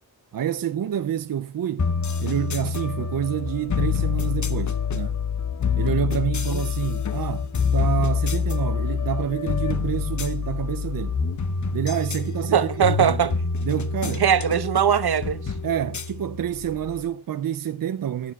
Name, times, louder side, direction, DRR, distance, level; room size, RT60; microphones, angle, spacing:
voice 1, 0.3-1.9 2.2-5.2 5.8-11.2 11.7-13.4 13.6-14.3 15.6-18.3, right 10 dB, 65° right, 0.5 m, -28 dB
sound 1, 1.8-17.0, left 6 dB, 50° left, 0.9 m, -26 dB
voice 2, 12.5-13.3 14.2-15.4, right 8 dB, 80° right, 1.1 m, -20 dB
23.0 x 7.8 x 2.4 m
wide cardioid pair, 115°, 38 cm